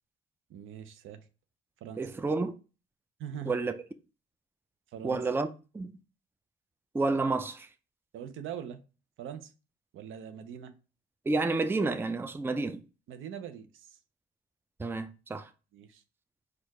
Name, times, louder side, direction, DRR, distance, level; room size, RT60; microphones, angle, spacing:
voice 1, 0.5-1.3 1.8-2.1 3.2-3.6 4.9-5.2 8.1-8.8 9.2-9.5 9.9-10.7 13.1-14.0 15.7-16.0, right 8 dB, 80° right, 0.7 m, -42 dB
voice 2, 2.0-2.5 3.5-3.7 5.0-5.5 5.7-5.9 6.9-7.7 11.3-12.8 14.8-15.5, right 3 dB, 10° right, 0.4 m, -30 dB
4.5 x 2.5 x 4.8 m
cardioid pair, 90°, 20 cm